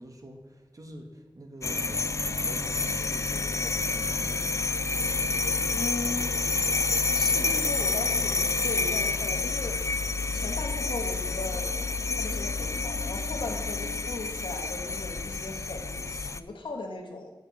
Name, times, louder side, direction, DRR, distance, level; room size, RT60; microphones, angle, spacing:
voice 1, 0.0-4.5, right 1 dB, 45° right, 4 dB, 1.6 m, -45 dB
sound 1, 1.6-16.4, left 3 dB, 35° left, 0.4 m, -29 dB
voice 2, 5.7-6.4 7.1-9.8 10.3-11.7 12.2-17.3, left 3 dB, 85° left, 2 dB, 1.6 m, -38 dB
7.9 x 6.1 x 7.6 m, 1.1 s
wide cardioid pair, 55°, 8 cm